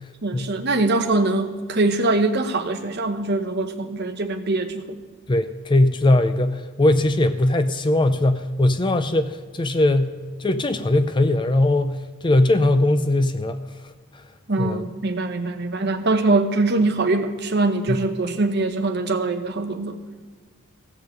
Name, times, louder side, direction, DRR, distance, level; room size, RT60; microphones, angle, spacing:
voice 1, 0.2-4.8 14.5-20.0, right 2 dB, 50° right, 7 dB, 0.9 m, -23 dB
voice 2, 5.3-12.0 12.2-13.6 14.6-14.8 17.9-18.0, left 1 dB, 20° left, 10 dB, 0.4 m, -20 dB
15.5 x 5.4 x 7.6 m, 1.4 s
head